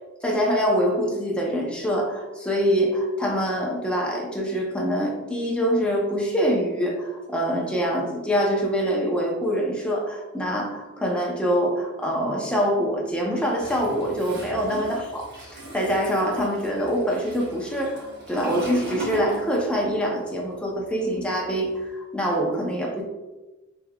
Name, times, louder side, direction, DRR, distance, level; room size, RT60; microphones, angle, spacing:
voice 1, 0.2-23.0, equal, 5° left, -2 dB, 0.6 m, -25 dB
Toilet flush, 13.5-20.0 20.2-21.8, right 1 dB, 50° right, 1.2 m, -38 dB
5.3 x 3.3 x 2.3 m, 1.1 s
head